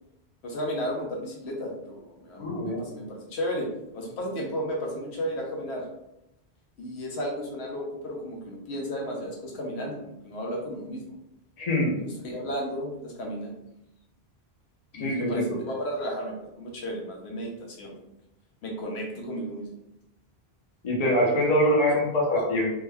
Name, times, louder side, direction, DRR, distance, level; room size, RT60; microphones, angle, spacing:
voice 1, 0.4-3.7 3.9-5.8 6.8-11.0 12.0-13.5 14.9-17.9 18.6-19.7, equal, 80° left, -1 dB, 1.1 m, -33 dB
voice 2, 2.4-2.8 11.6-11.9 15.0-15.4 20.8-22.7, equal, 40° left, -2 dB, 0.8 m, -24 dB
3.4 x 2.1 x 3.4 m, 0.86 s
omnidirectional pair, 1.1 m